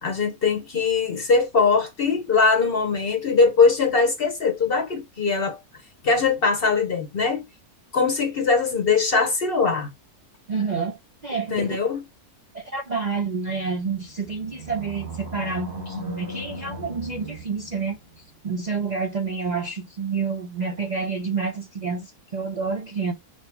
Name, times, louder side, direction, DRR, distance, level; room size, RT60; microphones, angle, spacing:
voice 1, 0.0-5.6 6.0-7.4 7.9-9.9 11.5-12.0, left 4 dB, 45° left, 0.8 m, -21 dB
voice 2, 10.5-11.8 12.5-23.1, right 5 dB, 50° right, 0.5 m, -29 dB
Animal, 13.9-18.3, equal, 65° right, 3.2 m, -37 dB
5.5 x 2.0 x 4.3 m
omnidirectional pair, 1.6 m